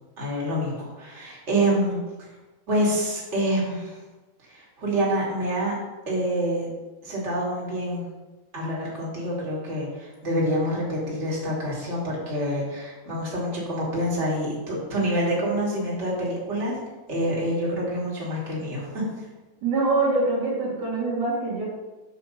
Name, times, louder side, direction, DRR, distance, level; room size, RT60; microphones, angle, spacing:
voice 1, 0.2-2.3 2.7-4.0 4.4-5.7 6.1-6.7 7.0-8.1 8.5-16.8 17.1-19.2, equal, 20° right, -5 dB, 2.6 m, -27 dB
voice 2, 19.6-21.6, right 3 dB, 55° right, -5 dB, 3.8 m, -24 dB
7.2 x 5.6 x 6.8 m, 1.2 s
omnidirectional pair, 4.3 m